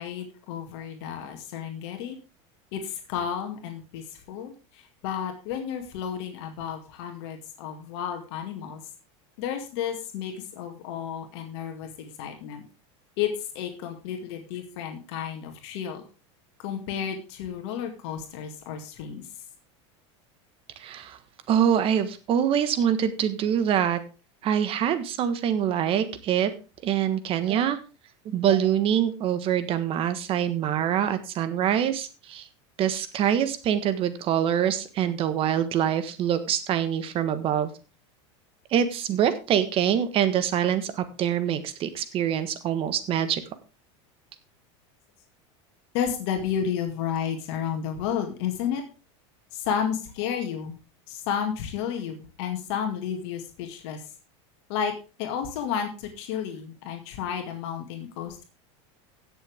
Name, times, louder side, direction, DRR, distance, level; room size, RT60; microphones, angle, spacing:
voice 1, 0.0-2.2 2.7-8.8 9.4-12.6 13.2-16.0 16.6-19.3 45.9-48.8 49.5-50.7 51.1-54.0 54.7-54.9 55.2-58.4, left 8 dB, 65° left, 4 dB, 2.1 m, -32 dB
voice 2, 20.8-21.2 21.5-24.0 24.4-26.5 26.8-27.8 28.2-32.5 32.8-37.7 38.7-43.4, right 9 dB, 40° right, 11 dB, 1.4 m, -25 dB
17.0 x 6.9 x 3.5 m, 0.32 s
supercardioid pair, 135°, 15 cm